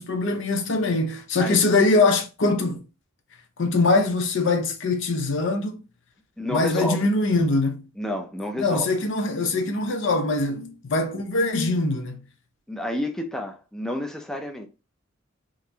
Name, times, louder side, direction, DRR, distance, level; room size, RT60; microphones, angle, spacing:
voice 1, 0.0-2.8 3.6-5.8 6.5-7.8 8.6-12.2, left 3 dB, 65° left, 0.6 m, -23 dB
voice 2, 6.4-7.1 8.0-8.9 12.7-14.7, left 1 dB, 5° left, 0.4 m, -30 dB
3.8 x 2.9 x 2.7 m
head